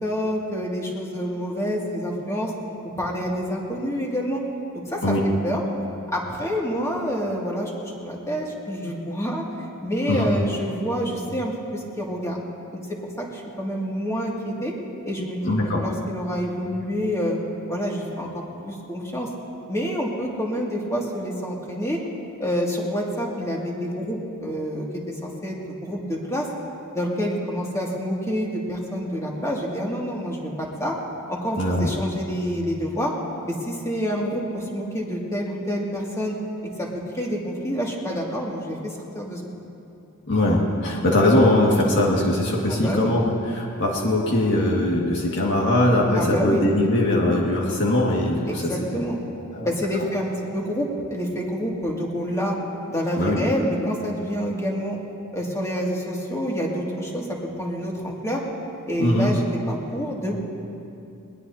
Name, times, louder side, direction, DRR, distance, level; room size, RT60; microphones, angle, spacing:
voice 1, 0.0-2.5 3.0-4.4 4.7-5.2 5.4-5.6 6.1-9.4 9.8-12.4 12.9-14.7 15.0-17.4 17.7-19.3 19.7-22.0 22.4-26.5 26.9-31.0 31.3-33.1 33.4-36.4 36.8-36.9 37.1-39.4 42.7-43.1 46.2-46.7 48.5-49.2 49.6-52.6 52.9-55.0 55.3-58.4 58.9-60.4, equal, 15° left, -3 dB, 2.3 m, -27 dB
voice 2, 15.4-15.8 31.6-31.9 40.3-43.2 43.5-49.0 49.5-49.7 53.2-53.5 59.0-59.3, left 1 dB, 55° left, -3 dB, 2.0 m, -21 dB
21.0 x 20.5 x 2.8 m, 2.6 s
head